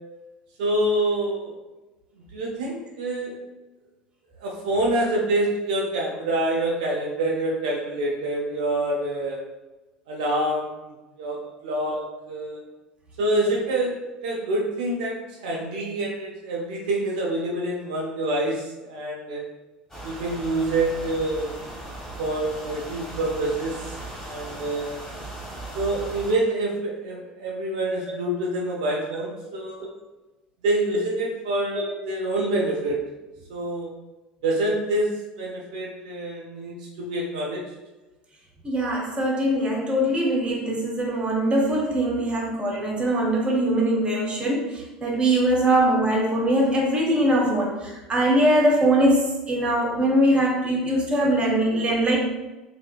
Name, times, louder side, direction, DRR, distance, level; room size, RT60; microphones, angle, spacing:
voice 1, 0.6-1.6 2.3-3.4 4.4-9.4 10.1-10.9 11.2-11.4 11.6-12.0 12.3-12.6 13.2-13.9 14.2-19.4 20.0-21.5 22.2-25.0 25.7-29.9 30.6-33.0 33.5-33.9 34.4-35.1 35.4-37.6, right 1 dB, 65° right, -2 dB, 0.4 m, -26 dB
sound 1, 19.9-26.3, right 1 dB, 10° left, 0.9 m, -38 dB
voice 2, 38.6-52.2, right 1 dB, 25° right, -1 dB, 0.7 m, -22 dB
2.7 x 2.5 x 2.2 m, 1.1 s
figure-of-eight pair, 70°, 4 cm